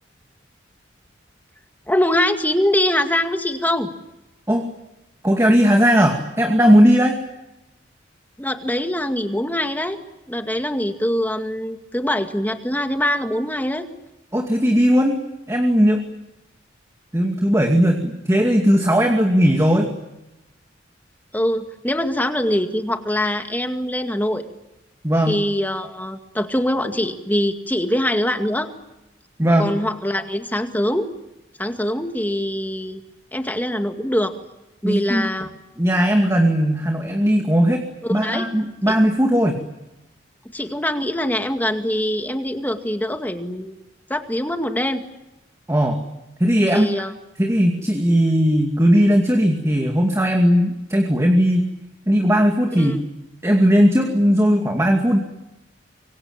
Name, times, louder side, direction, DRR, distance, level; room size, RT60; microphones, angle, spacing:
voice 1, 1.9-3.9 8.4-10.0 10.3-13.9 21.3-24.4 25.3-28.7 29.6-31.1 31.6-33.0 33.3-34.3 34.8-35.5 38.1-38.5 38.9-39.0 40.5-43.8 44.1-45.0 46.7-47.1 52.8-52.9, left 1 dB, 10° left, 6 dB, 2.1 m, -23 dB
voice 2, 5.2-7.2 14.3-15.2 15.5-16.0 17.1-19.9 25.0-25.4 29.4-29.8 34.8-35.3 35.8-37.8 38.1-39.6 45.7-46.0 46.4-46.9 47.4-51.7 52.1-53.0 53.4-55.2, equal, 15° right, 3 dB, 2.3 m, -17 dB
25.5 x 24.5 x 9.0 m, 0.96 s
head